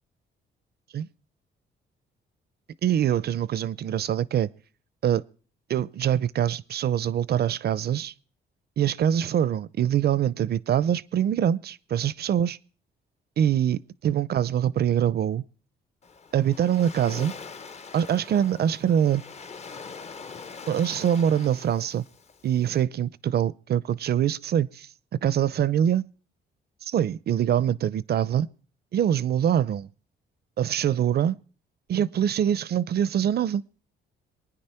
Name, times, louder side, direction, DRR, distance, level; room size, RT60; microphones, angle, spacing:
voice 1, 2.8-4.5 5.0-5.2 5.7-8.1 8.8-12.6 13.4-15.4 16.3-17.3 17.9-19.2 20.7-22.0 22.4-24.9 25.2-26.1 26.8-28.5 28.9-29.9 30.6-31.4 31.9-33.6, right 9 dB, 55° right, 0.5 m, -24 dB
Waves surf, 16.0-22.8, left 5 dB, 35° left, 0.7 m, -43 dB
23.0 x 9.6 x 4.4 m
cardioid pair, 90°, 20 cm